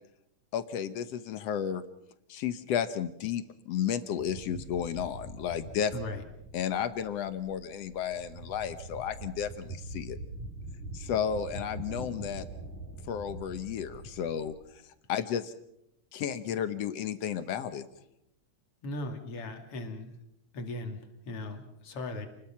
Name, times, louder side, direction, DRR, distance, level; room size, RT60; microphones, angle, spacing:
voice 1, 0.5-1.8 2.3-6.0 6.5-10.2 10.9-12.5 13.1-14.5 15.1-15.5 16.1-17.9, left 8 dB, 65° left, 12 dB, 1.9 m, -33 dB
sound 1, 4.2-14.5, right 2 dB, 80° right, 7.8 m, -43 dB
voice 2, 5.9-6.2 18.8-20.1 20.5-22.3, left 2 dB, 50° left, 5 dB, 3.3 m, -38 dB
29.0 x 20.5 x 5.9 m, 0.78 s
omnidirectional pair, 3.4 m